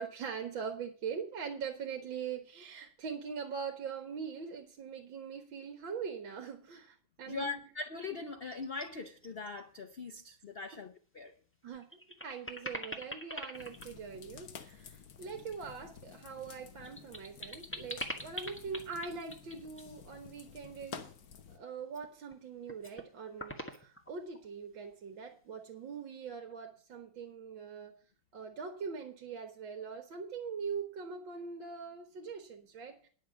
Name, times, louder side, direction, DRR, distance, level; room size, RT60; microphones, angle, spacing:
voice 1, 0.0-7.6 11.6-21.1 21.5-27.9 28.3-33.1, right 6 dB, 70° right, 2.1 m, -42 dB
voice 2, 7.3-11.3, left 4 dB, 70° left, 0.5 m, -41 dB
sound 1, 8.5-8.9 9.2-9.6 9.9-10.0 11.3-11.4 11.7-14.8 16.4-19.9 21.8-22.4 22.7-23.1 23.4-24.4, equal, 5° left, 1.2 m, -43 dB
sound 2, 13.5-21.6, left 7 dB, 55° left, 1.3 m, -51 dB
10.5 x 7.1 x 7.0 m
omnidirectional pair, 2.2 m